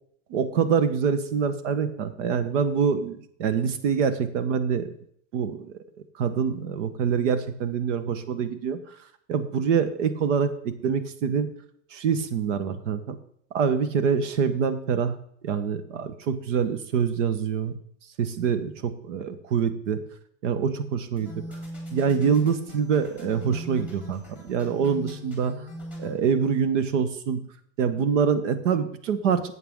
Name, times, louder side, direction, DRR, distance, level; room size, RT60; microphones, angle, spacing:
voice 1, 0.3-4.9 5.3-5.7 6.2-8.8 9.3-11.5 11.9-13.2 13.5-15.1 15.4-17.7 18.2-20.0 20.4-21.3 21.9-25.5 26.0-27.4 27.8-29.5, right 6 dB, 75° right, 12 dB, 1.3 m, -25 dB
sound 1, 21.2-26.1, equal, 5° right, 3.2 m, -40 dB
11.5 x 8.0 x 3.7 m, 0.66 s
supercardioid pair, 150°, 37 cm